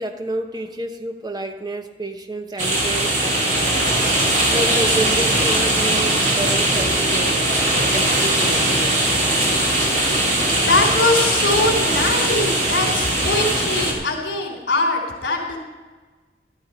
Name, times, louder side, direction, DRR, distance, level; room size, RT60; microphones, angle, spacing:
voice 1, 0.0-3.2 4.4-7.4 7.7-9.0, right 2 dB, 20° right, 5 dB, 0.9 m, -29 dB
sound 1, 2.6-13.9, right 1 dB, 45° right, 2.6 m, -20 dB
voice 2, 10.6-15.6, left 2 dB, 75° left, 0 dB, 3.4 m, -22 dB
13.0 x 13.0 x 4.4 m, 1.3 s
head